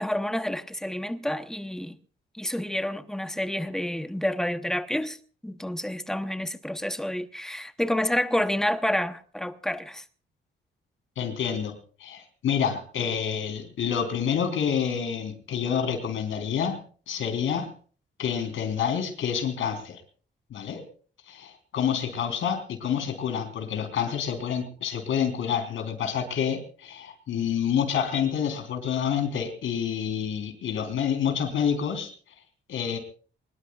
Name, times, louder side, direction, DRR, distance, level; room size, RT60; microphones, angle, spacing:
voice 1, 0.0-2.0 2.3-5.2 5.4-10.0, left 1 dB, 5° left, 0.9 m, -29 dB
voice 2, 11.2-17.7 18.2-20.0 20.5-20.8 21.3-32.1 32.7-33.0, left 8 dB, 85° left, 3.8 m, -28 dB
24.0 x 20.5 x 2.4 m
wide cardioid pair, 160°, 20 cm